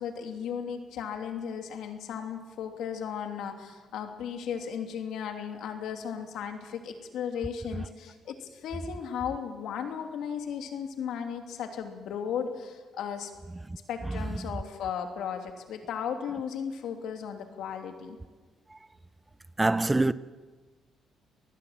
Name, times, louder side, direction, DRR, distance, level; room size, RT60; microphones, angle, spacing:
voice 1, 0.0-13.3 13.9-18.2, left 7 dB, 80° left, 3.0 m, -35 dB
voice 2, 19.6-20.1, right 2 dB, 15° right, 0.7 m, -24 dB
26.5 x 20.0 x 7.5 m
cardioid pair, 90°, 0 cm